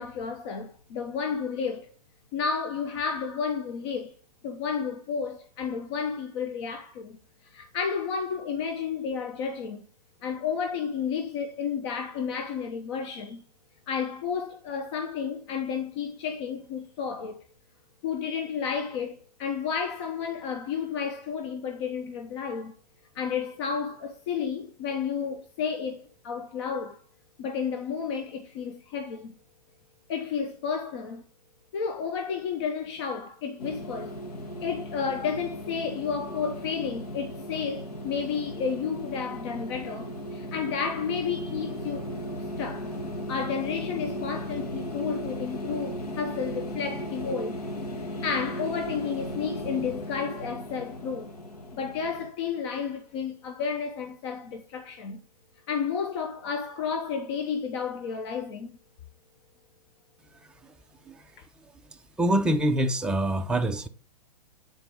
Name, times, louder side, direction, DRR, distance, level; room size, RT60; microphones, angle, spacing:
voice 1, 0.0-1.9 2.3-4.1 4.4-7.2 7.4-9.8 10.2-13.4 13.9-17.4 18.0-22.7 23.1-27.0 27.4-29.3 30.1-31.2 31.7-34.2 34.6-42.1 42.6-42.9 43.3-47.6 48.1-51.3 51.7-55.2 55.7-58.8, left 6 dB, 40° left, 0.9 m, -31 dB
sound 1, 33.6-52.3, equal, 65° left, 1.3 m, -36 dB
voice 2, 62.2-63.9, right 1 dB, 5° right, 0.4 m, -25 dB
8.5 x 4.2 x 3.6 m
figure-of-eight pair, 115°, 21 cm